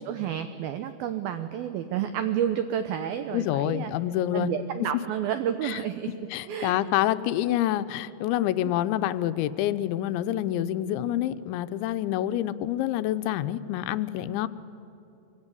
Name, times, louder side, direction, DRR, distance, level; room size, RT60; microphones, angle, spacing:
voice 1, 0.0-3.9 4.3-6.1 6.5-6.8 8.6-8.7, right 9 dB, 75° right, 10 dB, 2.3 m, -30 dB
voice 2, 3.3-4.5 5.6-5.8 6.3-14.5, left 13 dB, 85° left, 13 dB, 3.1 m, -27 dB
25.5 x 23.5 x 9.8 m, 2.8 s
omnidirectional pair, 5.2 m